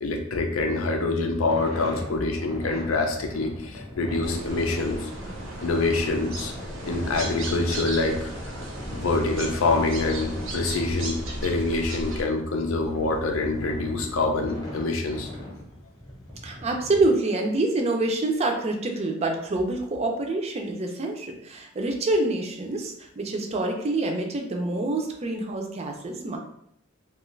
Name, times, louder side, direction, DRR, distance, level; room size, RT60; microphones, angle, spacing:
voice 1, 0.0-5.1 5.6-6.5 6.9-8.3 8.9-15.3, left 3 dB, 90° left, 3 dB, 0.5 m, -25 dB
sound 1, 1.5-17.1, equal, 20° left, 0.8 m, -40 dB
sound 2, 4.2-12.2, right 2 dB, 70° right, 0.7 m, -36 dB
voice 2, 16.4-26.4, right 2 dB, 30° right, 3 dB, 0.4 m, -26 dB
2.5 x 2.4 x 3.1 m, 0.73 s
head